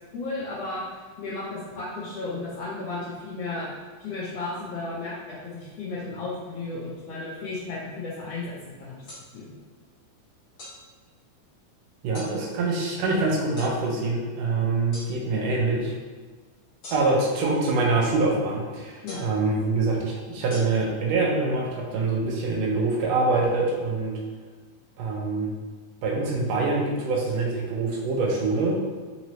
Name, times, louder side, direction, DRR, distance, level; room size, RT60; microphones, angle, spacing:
voice 1, 0.1-3.7 4.0-9.0 9.3-9.5 19.0-19.2, left 3 dB, 80° left, -8 dB, 1.4 m, -34 dB
sound 1, 9.1-9.2 10.6-10.8 12.1-12.3 13.6-13.7 14.9-15.1 16.8-17.3 19.1-19.4 20.5-20.6, left 2 dB, 60° left, 1.0 m, -40 dB
voice 2, 12.0-15.9 16.9-24.1 25.0-25.5 26.0-28.8, right 3 dB, 85° right, -2 dB, 1.5 m, -25 dB
5.0 x 2.8 x 3.0 m, 1.4 s
omnidirectional pair, 3.7 m